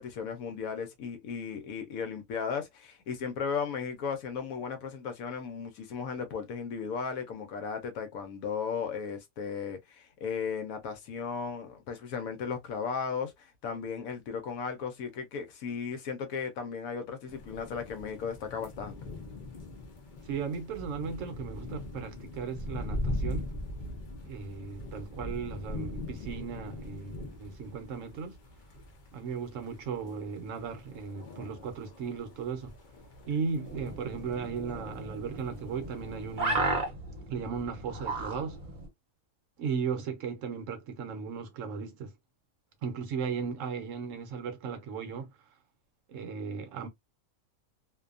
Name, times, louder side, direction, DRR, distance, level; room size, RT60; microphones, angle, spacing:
voice 1, 0.0-19.0, left 6 dB, 75° left, 1.0 m, -36 dB
sound 1, 17.3-36.5, left 1 dB, 55° left, 0.5 m, -41 dB
voice 2, 20.3-23.5 24.2-28.3 29.1-32.7 33.3-36.7 37.3-38.6 39.6-42.1 42.8-45.3 46.1-46.9, right 6 dB, 65° right, 1.0 m, -36 dB
sound 2, 33.6-38.9, right 2 dB, 40° right, 0.8 m, -35 dB
2.6 x 2.2 x 2.4 m
omnidirectional pair, 1.5 m